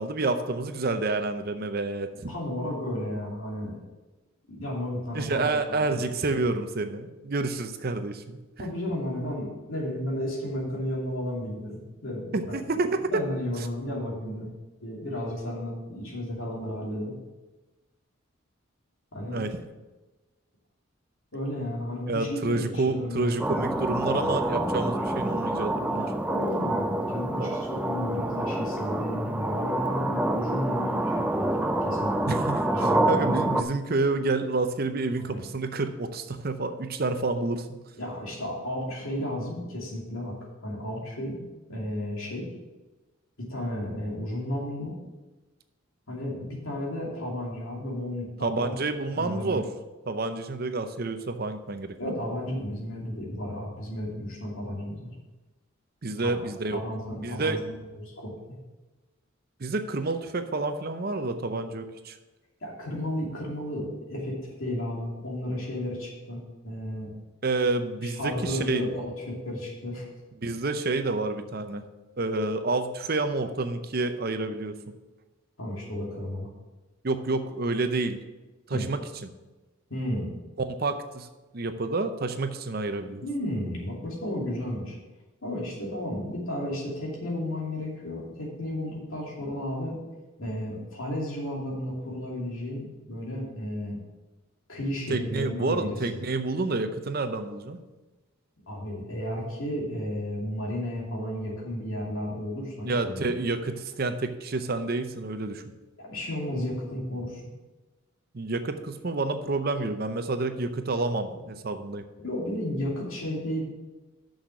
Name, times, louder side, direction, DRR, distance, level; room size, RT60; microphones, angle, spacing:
voice 1, 0.0-2.3 5.1-8.4 12.3-13.2 19.3-19.6 22.1-26.1 27.4-27.6 32.3-32.6 33.1-37.7 48.4-49.7 50.1-51.9 56.0-56.8 57.2-57.6 59.6-62.2 67.4-68.9 70.4-71.8 72.2-74.7 77.0-78.2 78.7-79.3 80.7-81.3 81.5-83.2 95.1-97.8 102.9-105.6 108.3-112.0, right 3 dB, 45° right, 9 dB, 0.7 m, -29 dB
voice 2, 2.3-3.8 4.5-6.1 8.6-12.6 13.1-14.5 14.8-17.1 19.1-19.4 21.3-23.7 26.3-32.3 32.7-33.6 35.2-35.4 38.0-40.3 40.6-41.4 41.7-42.5 43.4-44.9 46.1-48.7 49.1-49.6 52.0-55.1 56.7-58.3 62.6-67.1 68.0-70.1 75.6-76.5 78.7-78.8 79.9-80.3 83.2-84.9 85.4-90.0 90.4-94.0 94.7-96.2 98.7-103.3 106.0-107.4 111.3-111.4 112.2-113.6, left 1 dB, 80° left, -3 dB, 2.6 m, -33 dB
sound 1, 23.4-33.6, right 1 dB, 5° right, 0.4 m, -27 dB
6.4 x 6.4 x 7.1 m, 1.2 s
head